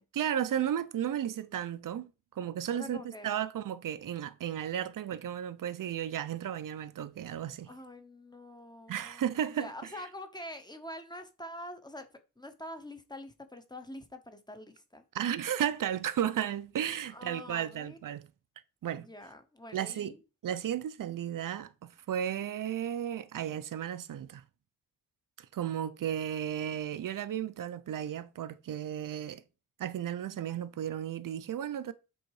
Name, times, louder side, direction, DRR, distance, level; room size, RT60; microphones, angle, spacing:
voice 1, 0.1-7.7 8.9-9.7 15.1-18.3 18.8-19.1 19.7-20.1 20.4-24.4 25.4-29.4 29.8-31.9, right 10 dB, 80° right, 0.6 m, -34 dB
voice 2, 2.7-3.4 7.7-9.2 9.5-12.1 12.4-15.0 17.1-18.0 19.1-20.2, left 1 dB, 15° left, 0.9 m, -45 dB
7.8 x 3.9 x 4.8 m
wide cardioid pair, 165°, 32 cm